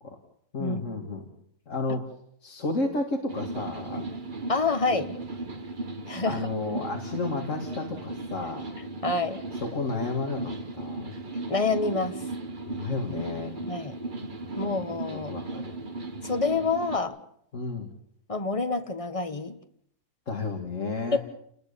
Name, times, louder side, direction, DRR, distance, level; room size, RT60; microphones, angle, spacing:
voice 1, 0.5-1.3 1.7-2.1 2.4-4.1 6.2-8.6 9.5-11.1 12.7-13.7 14.4-14.5 15.1-15.7 17.5-17.9 20.3-21.2, left 3 dB, 50° left, 2 dB, 2.6 m, -32 dB
sound 1, 3.3-17.0, right 2 dB, 35° right, 1.5 m, -36 dB
voice 2, 4.5-5.1 6.1-6.4 8.8-9.4 11.5-12.2 13.6-13.9 14.6-15.3 16.2-17.2 18.3-19.6 21.1-21.2, left 3 dB, 25° left, 8 dB, 1.4 m, -27 dB
29.0 x 20.5 x 7.0 m, 0.70 s
omnidirectional pair, 1.6 m